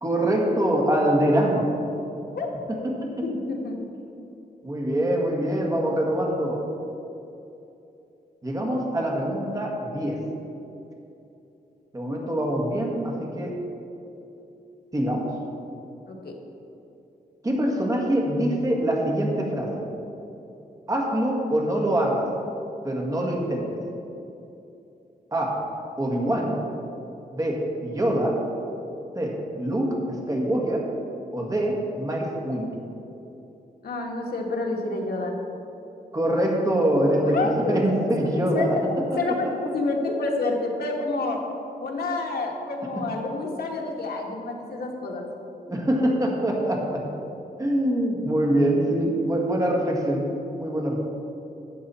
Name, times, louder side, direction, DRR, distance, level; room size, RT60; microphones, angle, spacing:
voice 1, 0.0-1.7 4.6-6.6 8.4-10.2 11.9-13.5 14.9-15.2 17.4-19.9 20.9-22.3 22.8-23.8 25.3-25.5 26.0-26.6 27.3-28.3 29.1-30.0 30.3-30.8 31.3-32.7 36.1-38.7 45.7-47.0 47.6-50.3 50.6-51.0, right 1 dB, 20° right, -1 dB, 1.7 m, -24 dB
voice 2, 2.3-2.9 3.2-3.8 16.1-16.3 33.8-35.3 37.2-37.8 38.5-38.8 39.1-41.4 41.8-45.3, left 3 dB, 70° left, 0 dB, 1.5 m, -29 dB
12.5 x 7.7 x 4.3 m, 2.9 s
wide cardioid pair, 140°, 16 cm